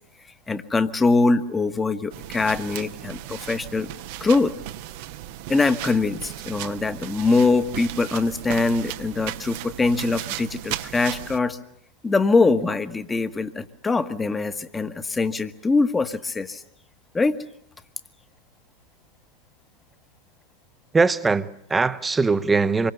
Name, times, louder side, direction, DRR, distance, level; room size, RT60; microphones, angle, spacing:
voice 1, 0.5-3.9 4.2-4.5 5.5-11.6 12.0-16.6 17.1-17.4, left 3 dB, 15° left, 1.4 m, -23 dB
sound 1, 2.1-11.4, right 14 dB, 50° right, 1.1 m, -36 dB
voice 2, 20.9-22.9, right 4 dB, 10° right, 1.0 m, -21 dB
26.5 x 23.5 x 8.2 m
figure-of-eight pair, 90°, 0 cm